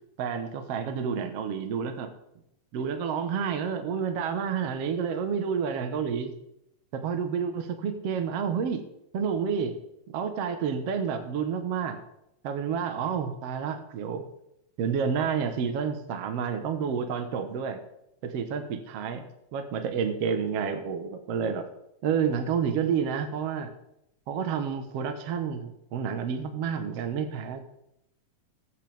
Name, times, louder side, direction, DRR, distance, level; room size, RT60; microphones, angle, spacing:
voice 1, 0.2-2.1 2.7-6.3 6.9-8.9 9.1-9.8 10.1-12.0 12.4-14.3 14.8-17.8 18.2-21.7 22.0-23.7 24.3-27.7, right 6 dB, 60° right, 7 dB, 2.0 m, -29 dB
21.0 x 8.4 x 3.5 m, 0.81 s
omnidirectional pair, 3.5 m